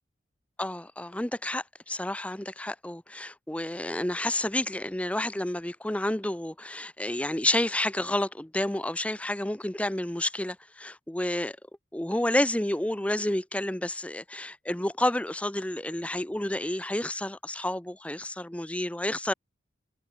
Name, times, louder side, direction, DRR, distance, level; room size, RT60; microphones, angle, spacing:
voice 1, 0.6-11.6 11.9-19.3, left 1 dB, 5° left, 0.6 m, -30 dB
head